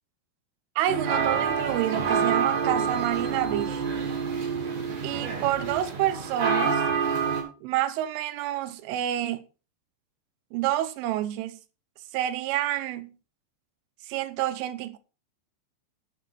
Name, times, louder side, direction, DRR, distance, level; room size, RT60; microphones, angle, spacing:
voice 1, 0.8-3.8 5.0-6.8 7.6-9.4 10.5-11.6 12.1-13.1 14.1-15.0, right 13 dB, 80° right, 3.4 m, -28 dB
sound 1, 0.9-7.4, right 6 dB, 45° right, 5.3 m, -27 dB
17.0 x 6.5 x 4.2 m
omnidirectional pair, 5.6 m